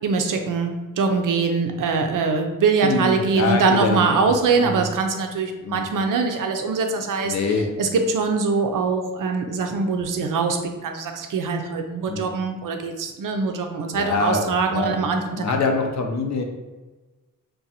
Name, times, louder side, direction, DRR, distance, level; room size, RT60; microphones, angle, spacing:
voice 1, 0.0-7.3 7.8-15.4, right 4 dB, 70° right, 4 dB, 0.5 m, -23 dB
voice 2, 2.8-4.9 5.6-5.8 7.2-7.7 12.1-12.2 13.9-15.0 15.4-16.4, left 3 dB, 55° left, 3 dB, 0.6 m, -25 dB
2.6 x 2.2 x 4.1 m, 1.2 s
cardioid pair, 90°, 34 cm